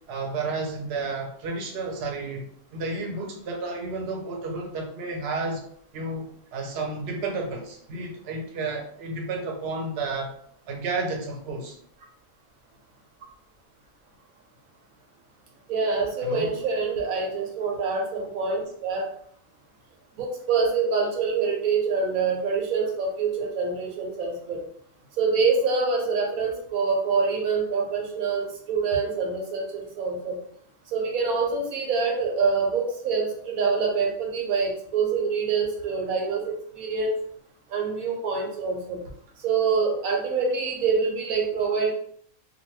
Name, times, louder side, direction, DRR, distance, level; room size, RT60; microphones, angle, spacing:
voice 1, 0.1-2.5 2.7-5.6 5.9-10.3 10.7-11.8 16.2-16.6, right 3 dB, 55° right, 1 dB, 0.8 m, -31 dB
voice 2, 15.7-19.1 20.1-24.6 25.2-30.4 30.9-37.2 37.7-39.0 39.4-41.9, right 5 dB, 85° right, 1 dB, 1.2 m, -25 dB
2.9 x 2.2 x 3.1 m, 0.63 s
omnidirectional pair, 1.4 m